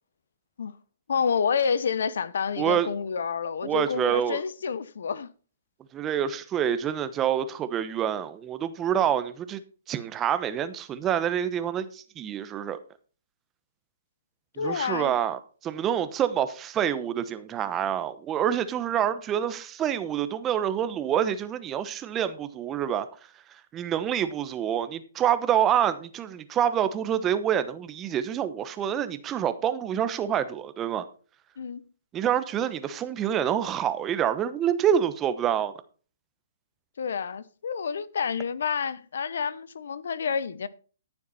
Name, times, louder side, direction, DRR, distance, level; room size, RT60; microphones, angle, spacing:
voice 1, 1.1-5.3 14.6-15.1 31.6-31.8 37.0-40.7, left 6 dB, 70° left, 0.9 m, -29 dB
voice 2, 2.6-2.9 3.6-4.4 5.9-9.6 9.9-12.8 14.6-23.1 23.7-31.0 32.1-35.7, right 9 dB, 20° right, 1.0 m, -27 dB
14.5 x 7.1 x 4.2 m
hypercardioid pair, 135°, 0 cm